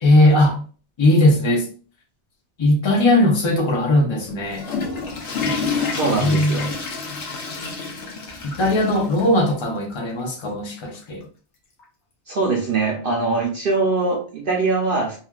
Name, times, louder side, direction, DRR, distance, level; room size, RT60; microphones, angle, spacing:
voice 1, 0.0-0.6 1.0-1.6 2.6-4.6 5.5-6.7 8.4-11.2, left 1 dB, 30° left, 0 dB, 0.6 m, -19 dB
Water / Toilet flush, 4.3-9.3 9.6-9.7 10.4-10.5 11.8-11.9, left 4 dB, 80° left, 1.0 m, -28 dB
voice 2, 5.9-6.7 12.3-15.2, right 3 dB, 60° right, -1 dB, 0.7 m, -22 dB
3.0 x 2.3 x 2.3 m, 0.41 s
omnidirectional pair, 1.2 m